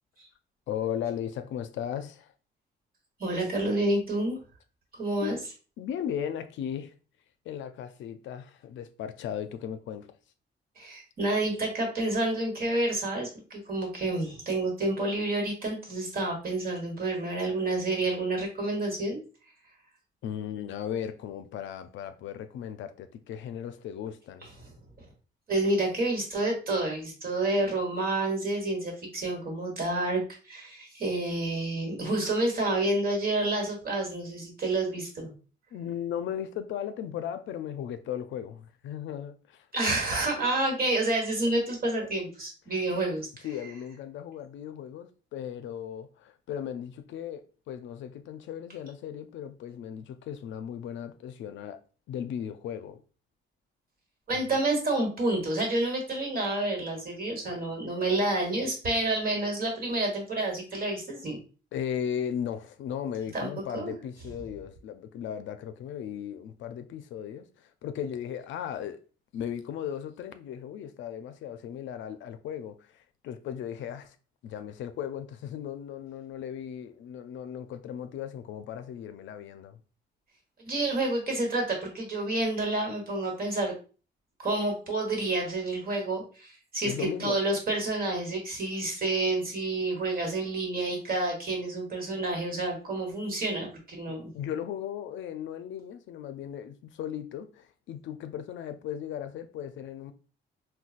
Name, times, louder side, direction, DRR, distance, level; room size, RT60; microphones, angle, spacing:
voice 1, 0.7-2.3 5.2-5.3 5.8-6.9 7.5-10.2 20.2-24.5 32.2-32.3 35.7-39.7 43.4-51.8 52.1-53.0 54.3-54.6 57.5-57.7 61.7-69.0 69.3-74.2 74.4-79.8 86.8-87.4 94.1-100.1, left 9 dB, 70° left, 0.4 m, -36 dB
voice 2, 3.2-4.4 4.9-5.4 10.8-19.2 25.5-35.3 39.7-43.3 54.3-61.4 63.3-63.9 80.6-83.7 84.4-86.9 87.2-94.3, right 2 dB, 45° right, 1.3 m, -29 dB
3.8 x 2.2 x 2.4 m
cardioid pair, 90°, 20 cm